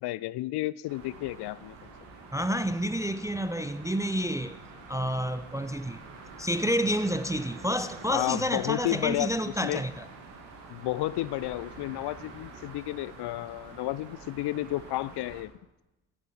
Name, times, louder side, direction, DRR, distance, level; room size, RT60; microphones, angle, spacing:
voice 1, 0.0-1.8 8.1-9.3 9.6-9.8 10.7-15.5, left 17 dB, 55° left, 0.5 m, -31 dB
sound 1, 0.9-15.4, right 3 dB, 80° right, 1.7 m, -47 dB
voice 2, 2.3-4.6 4.9-6.0 6.4-10.1, equal, 5° right, 0.3 m, -29 dB
15.0 x 7.5 x 4.4 m
hypercardioid pair, 45°, 49 cm